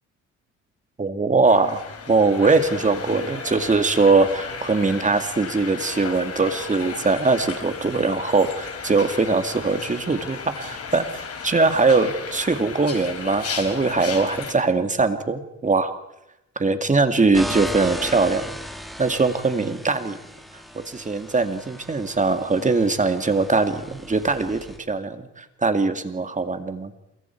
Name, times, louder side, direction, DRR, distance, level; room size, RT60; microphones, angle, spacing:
voice 1, 1.0-1.8 2.1-11.0 11.4-15.9 16.6-18.6 19.0-20.2 20.7-24.6 24.9-26.9, right 3 dB, 25° right, 8 dB, 2.2 m, -21 dB
sound 1, 1.4-14.5, left 5 dB, 50° left, 3.9 m, -35 dB
sound 2, 17.3-24.8, equal, ahead, 2.7 m, -36 dB
27.5 x 22.5 x 4.7 m, 0.88 s
cardioid pair, 90°, 30 cm